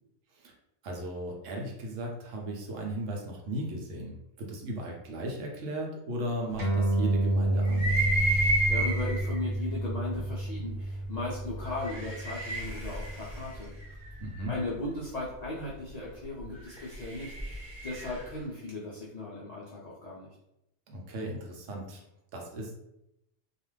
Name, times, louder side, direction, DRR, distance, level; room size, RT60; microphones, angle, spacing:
voice 1, 0.8-8.1 14.2-14.5 20.9-22.0 22.3-22.8, right 1 dB, 70° right, 0 dB, 0.9 m, -36 dB
sound 1, 6.6-13.4, right 1 dB, 85° right, 1.3 m, -30 dB
sound 2, 7.7-9.3 10.2-10.3 11.6-14.5 16.5-18.3, right 2 dB, 30° right, 0.5 m, -31 dB
voice 2, 8.3-13.7 14.5-20.3, left 2 dB, 80° left, -6 dB, 0.3 m, -37 dB
2.4 x 2.4 x 3.1 m, 0.85 s
omnidirectional pair, 1.4 m